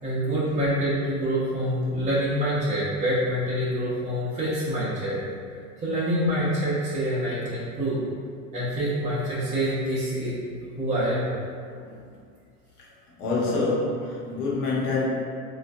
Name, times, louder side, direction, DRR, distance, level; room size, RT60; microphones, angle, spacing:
voice 1, 0.0-5.2 5.8-8.0 8.5-10.3 10.8-11.3, equal, 15° right, -10 dB, 0.7 m, -26 dB
voice 2, 13.2-15.1, left 3 dB, 70° left, -6 dB, 1.1 m, -26 dB
3.0 x 2.4 x 2.5 m, 2.2 s
hypercardioid pair, 100°, 46 cm